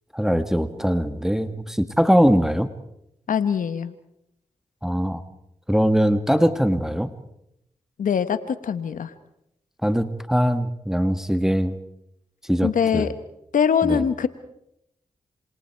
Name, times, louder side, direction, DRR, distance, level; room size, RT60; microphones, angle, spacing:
voice 1, 0.1-2.7 4.8-5.2 5.7-7.1 9.8-11.8 12.5-13.1 13.8-14.0, equal, 5° right, 10 dB, 1.8 m, -21 dB
voice 2, 3.3-3.9 8.0-9.1 12.6-13.1 13.5-14.3, left 7 dB, 75° left, 12 dB, 1.3 m, -22 dB
27.0 x 26.0 x 4.7 m, 0.80 s
supercardioid pair, 40°, 14 cm